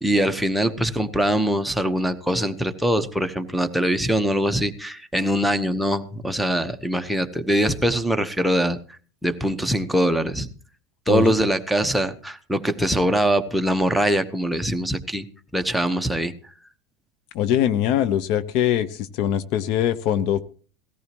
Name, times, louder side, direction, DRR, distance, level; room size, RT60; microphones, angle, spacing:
voice 1, 0.0-8.8 9.2-10.5 11.1-15.2 15.5-16.3, equal, ahead, 6 dB, 1.0 m, -22 dB
voice 2, 17.3-20.4, left 10 dB, 60° left, 15 dB, 0.8 m, -22 dB
18.0 x 14.0 x 3.0 m, 0.41 s
supercardioid pair, 115°, 0 cm